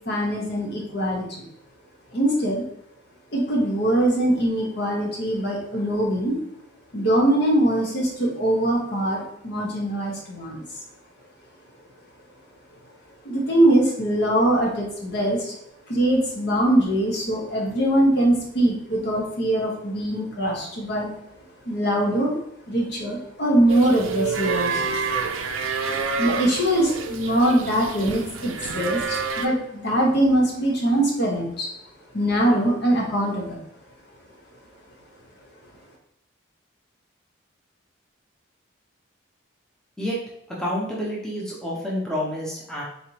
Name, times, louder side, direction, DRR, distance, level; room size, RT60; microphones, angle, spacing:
voice 1, 0.1-1.3 2.1-2.6 3.3-6.4 6.9-10.6 13.2-15.5 15.9-21.1 21.6-22.4 22.7-25.0 26.2-31.7 32.1-33.6, right 1 dB, 55° left, -1 dB, 1.0 m, -22 dB
sound 1, 23.7-29.5, right 5 dB, 85° right, 0.5 m, -28 dB
voice 2, 40.5-42.8, equal, 5° left, -5 dB, 0.7 m, -28 dB
4.0 x 3.2 x 2.9 m, 0.75 s
head